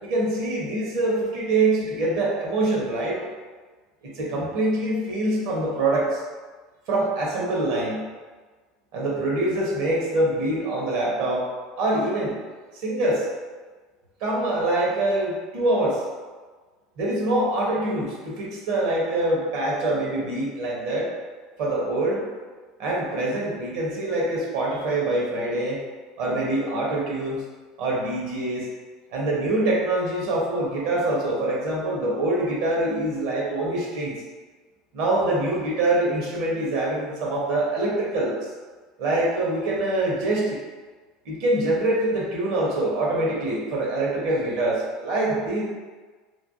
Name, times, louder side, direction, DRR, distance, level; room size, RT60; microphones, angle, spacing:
voice 1, 0.0-3.2 4.0-6.2 6.9-8.0 8.9-11.4 11.8-12.4 12.7-13.2 14.2-16.0 17.0-21.1 21.6-22.3 22.8-25.8 26.2-27.4 27.8-28.7 29.1-34.1 34.9-38.3 39.0-40.6 41.2-45.6, right 2 dB, 65° right, -3 dB, 1.0 m, -24 dB
3.2 x 2.4 x 2.6 m, 1.4 s
hypercardioid pair, 80°, 0 cm